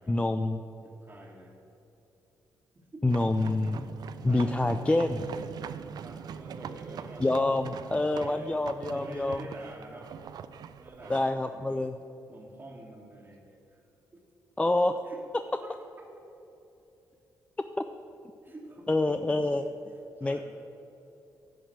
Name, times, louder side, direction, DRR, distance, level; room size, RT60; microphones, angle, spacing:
voice 1, 0.1-0.6 3.0-3.8 4.2-5.3 7.2-9.4 11.1-11.9 14.6-15.0 18.9-19.6 20.2-20.4, left 2 dB, 15° left, 8 dB, 0.4 m, -26 dB
voice 2, 0.8-1.6 2.7-3.0 4.2-4.7 5.5-7.4 8.1-10.1 10.5-11.9 12.3-13.8 14.1-14.2 15.0-15.2 15.6-15.9 18.4-19.7 20.2-20.4, right 2 dB, 30° right, -4 dB, 1.5 m, -48 dB
sound 1, 3.1-11.3, right 7 dB, 65° right, 0.4 m, -42 dB
11.0 x 4.3 x 7.7 m, 2.9 s
cardioid pair, 65°, 7 cm